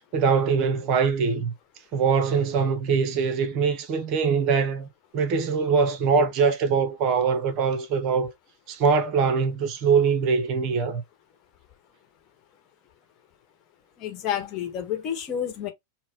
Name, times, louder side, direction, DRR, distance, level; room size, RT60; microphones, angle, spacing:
voice 1, 0.1-1.5 1.9-8.3 8.7-11.0, right 5 dB, 40° right, 0.7 m, -23 dB
voice 2, 14.0-15.7, left 9 dB, 35° left, 1.1 m, -30 dB
4.1 x 2.1 x 3.6 m
figure-of-eight pair, 90°, 0 cm